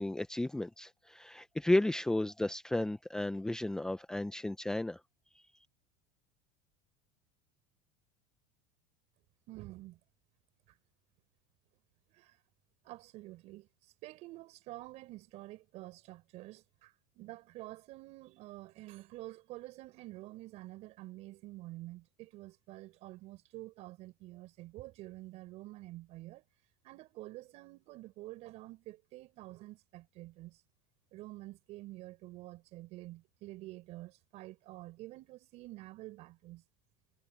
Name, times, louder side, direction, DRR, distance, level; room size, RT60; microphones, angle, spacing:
voice 1, 0.0-5.0, left 1 dB, 5° left, 0.8 m, -33 dB
voice 2, 9.5-10.0 10.7-10.8 12.1-12.4 12.8-13.7 14.0-26.4 26.8-30.6 31.1-36.6, right 18 dB, 50° right, 7.3 m, -48 dB
supercardioid pair, 140°, 14 cm